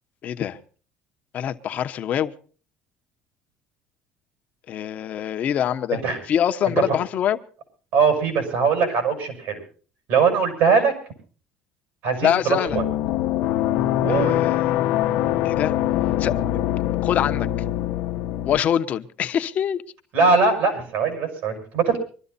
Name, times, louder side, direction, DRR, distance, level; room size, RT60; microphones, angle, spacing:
voice 1, 0.2-0.6 1.3-2.3 4.7-6.0 6.3-7.4 12.2-12.8 14.1-14.7 15.4-15.7 16.2-16.3 17.0-17.5 18.4-19.8, left 9 dB, 50° left, 1.1 m, -24 dB
voice 2, 7.9-9.6 10.1-10.9 12.0-12.8 14.0-14.4 20.1-22.0, right 5 dB, 75° right, 6.8 m, -21 dB
sound 1, 12.7-18.6, left 13 dB, 80° left, 1.1 m, -23 dB
23.5 x 12.5 x 4.1 m
cardioid pair, 110°, 3 cm